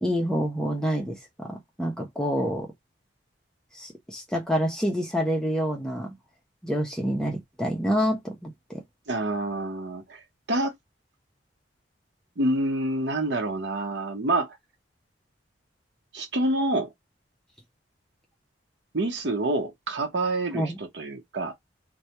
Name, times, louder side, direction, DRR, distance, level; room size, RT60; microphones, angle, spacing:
voice 1, 0.0-2.7 3.7-6.1 6.6-8.8 20.5-20.8, equal, 5° left, 0.6 m, -27 dB
voice 2, 9.1-10.2 10.5-10.7 12.4-14.6 16.1-16.9 18.9-21.5, right 2 dB, 70° right, 0.8 m, -27 dB
2.2 x 2.2 x 2.8 m
head